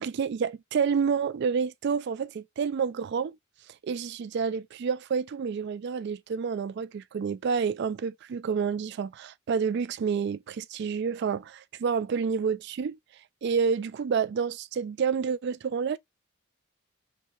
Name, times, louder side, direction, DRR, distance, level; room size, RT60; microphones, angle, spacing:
voice 1, 0.0-3.4 3.8-13.0 13.4-16.0, right 6 dB, 55° right, 0.3 m, -29 dB
3.2 x 2.7 x 3.2 m
head